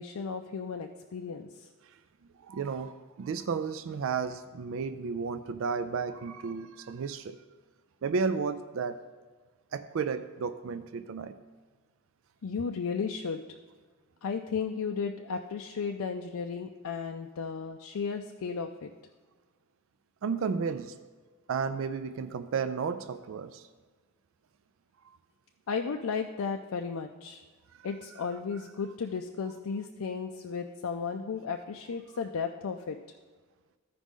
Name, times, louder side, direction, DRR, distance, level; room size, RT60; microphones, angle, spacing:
voice 1, 0.0-1.7 12.4-13.4 14.2-18.9 25.7-27.4 27.8-33.0, left 5 dB, 75° left, 5 dB, 0.4 m, -34 dB
voice 2, 2.4-7.4 8.0-9.0 9.7-11.3 20.2-21.0 21.5-23.7, right 5 dB, 60° right, 11 dB, 0.4 m, -33 dB
14.5 x 5.0 x 3.7 m, 1.4 s
head